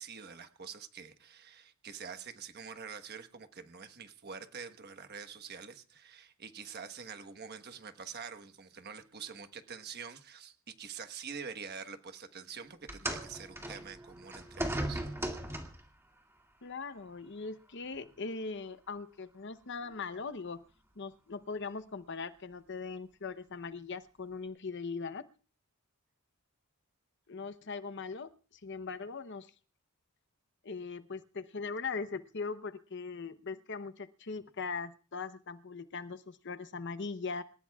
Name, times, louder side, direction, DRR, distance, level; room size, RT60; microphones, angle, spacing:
voice 1, 0.0-15.0, right 6 dB, 45° right, 8 dB, 1.3 m, -46 dB
sound 1, 12.9-15.9 16.9-17.1 17.9-18.0, right 1 dB, 10° right, 2.2 m, -37 dB
voice 2, 16.6-20.6 21.0-25.3 27.3-29.5 30.6-37.4, left 4 dB, 55° left, 11 dB, 0.8 m, -40 dB
27.0 x 15.5 x 2.4 m, 0.39 s
head